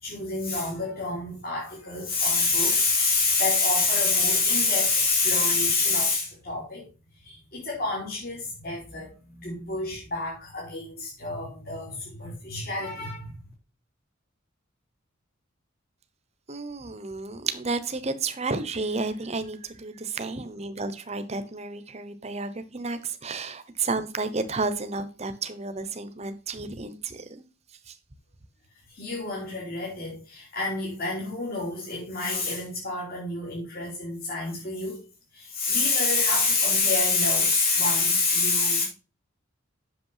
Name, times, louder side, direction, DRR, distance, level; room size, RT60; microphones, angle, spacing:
voice 1, 0.0-6.9 7.2-13.4 28.9-35.0 35.3-38.8, left 3 dB, 50° left, 3.8 m, -26 dB
voice 2, 16.5-27.4 27.9-28.0, right 3 dB, 30° right, 1.0 m, -32 dB
8.3 x 6.5 x 5.7 m
head